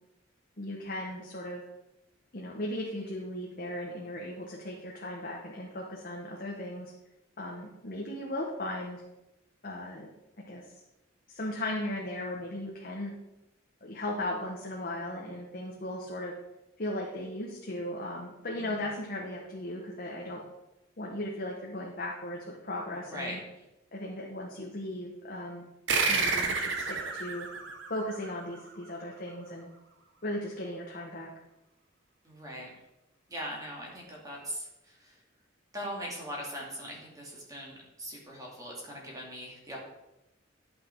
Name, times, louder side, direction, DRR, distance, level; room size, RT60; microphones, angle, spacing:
voice 1, 0.6-1.6 2.3-6.9 7.4-9.0 9.6-10.1 10.5-10.6 11.3-13.1 13.8-16.3 16.8-20.4 21.0-23.4 23.9-25.6 26.1-27.5 27.9-29.7 30.2-31.3, left 1 dB, 50° left, -2 dB, 1.2 m, -37 dB
voice 2, 23.1-23.4 32.2-32.7 33.3-35.1 35.7-39.8, equal, 20° right, -3 dB, 2.5 m, -40 dB
sound 1, 25.9-28.9, right 4 dB, 70° right, 1.2 m, -30 dB
11.0 x 5.9 x 4.6 m, 0.93 s
head